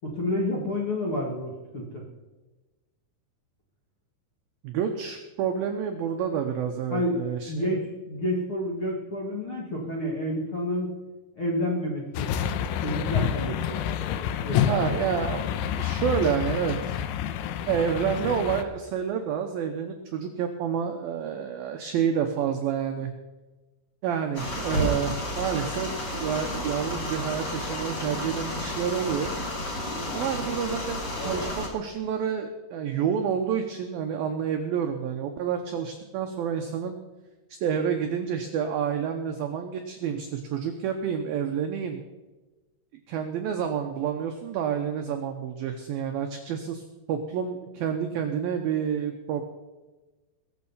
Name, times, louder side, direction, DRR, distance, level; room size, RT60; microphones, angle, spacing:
voice 1, 0.0-2.0 6.9-11.0 11.3-12.3 12.8-13.8 14.4-15.1, left 1 dB, 50° left, -3 dB, 1.6 m, -29 dB
voice 2, 4.6-7.7 14.7-15.5 15.8-17.1 17.7-23.1 24.0-29.3 30.1-37.0 37.6-42.0 43.1-49.4, right 8 dB, 80° right, 5 dB, 2.1 m, -29 dB
sound 1, 12.2-18.6, left 9 dB, 85° left, 3.2 m, -28 dB
sound 2, 24.3-31.7, left 1 dB, 35° left, 2.3 m, -31 dB
21.5 x 7.4 x 5.7 m, 1.2 s
omnidirectional pair, 5.4 m